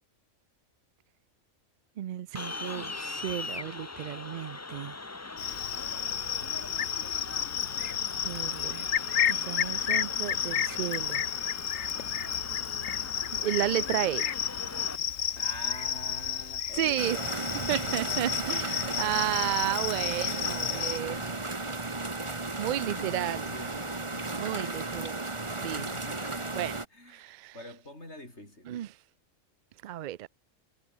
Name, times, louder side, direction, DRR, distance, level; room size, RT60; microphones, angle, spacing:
voice 1, 2.0-5.0 8.2-8.9 9.3-11.2 13.3-14.3 16.7-17.2 17.7-21.5 22.3-23.5 24.3-25.2 25.6-25.8 26.5-26.7 27.1-27.5 28.7-28.9 29.8-30.3, right 13 dB, 85° right, 0.4 m, -33 dB
sound 1, 2.4-15.0, left 3 dB, 25° left, 0.3 m, -41 dB
Cricket, 5.4-21.0, left 9 dB, 75° left, 1.4 m, -32 dB
voice 2, 15.4-19.5 20.2-21.8 22.6-24.9 25.7-28.8, left 1 dB, 55° left, 7.9 m, -46 dB
sound 2, 17.0-26.9, right 2 dB, 25° right, 1.7 m, -35 dB
omnidirectional pair, 1.4 m